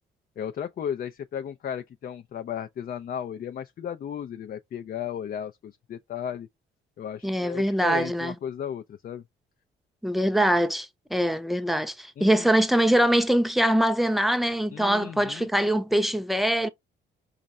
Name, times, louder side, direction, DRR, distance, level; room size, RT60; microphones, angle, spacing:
voice 1, 0.4-6.5 7.0-9.2 12.2-12.5 14.7-15.5, left 8 dB, 45° left, 0.5 m, -35 dB
voice 2, 7.2-8.3 10.0-16.7, right 1 dB, ahead, 0.7 m, -23 dB
5.2 x 2.5 x 4.1 m
cardioid pair, 90°, 20 cm